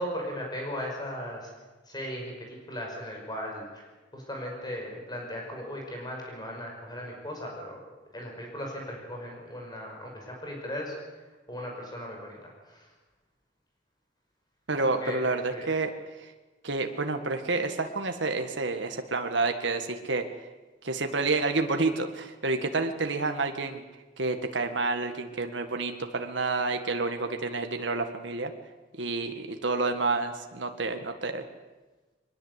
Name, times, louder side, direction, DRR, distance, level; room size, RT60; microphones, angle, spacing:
voice 1, 0.0-1.5 1.9-3.9 4.1-7.8 8.1-10.9 11.5-12.9 14.8-15.2 15.5-15.7, equal, 20° left, 0 dB, 5.7 m, -37 dB
voice 2, 14.7-15.9 16.2-16.3 16.6-20.2 20.8-23.8 24.2-28.5 29.0-31.4, right 3 dB, 70° right, 6 dB, 1.8 m, -29 dB
22.5 x 20.5 x 8.2 m, 1.2 s
head